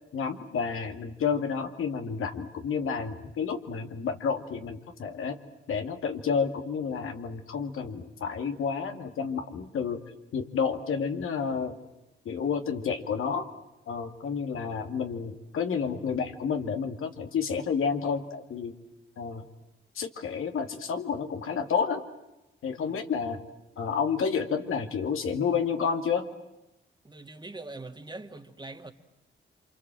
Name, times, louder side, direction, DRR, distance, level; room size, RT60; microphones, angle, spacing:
voice 1, 0.1-5.4 5.7-10.0 10.3-11.8 12.2-13.5 13.9-18.7 19.2-19.5 19.9-22.0 22.6-23.4 23.8-26.3, left 6 dB, 80° left, 2.5 m, -30 dB
voice 2, 27.0-28.9, right 2 dB, 20° right, 2.3 m, -42 dB
29.0 x 25.5 x 7.8 m
cardioid pair, 75°, 21 cm